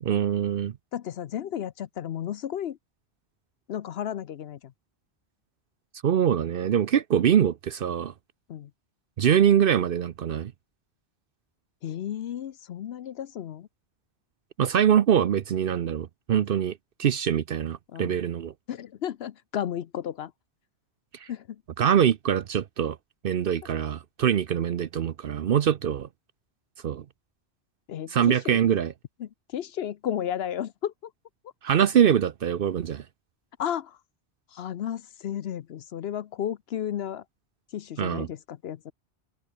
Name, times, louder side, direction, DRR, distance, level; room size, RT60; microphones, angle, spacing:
voice 1, 0.0-0.7 6.0-8.1 9.2-10.5 14.6-18.5 21.2-21.3 21.8-23.0 23.2-26.1 26.8-27.0 28.1-28.9 31.6-33.0 38.0-38.3, right 9 dB, 60° right, 0.8 m, -23 dB
voice 2, 0.9-2.8 3.7-4.7 8.5-8.7 11.8-13.7 17.9-18.2 18.7-20.3 21.3-21.6 27.9-28.6 29.2-31.1 33.6-34.0 34.5-37.2 37.7-38.9, left 10 dB, 70° left, 0.9 m, -33 dB
omnidirectional pair, 1.1 m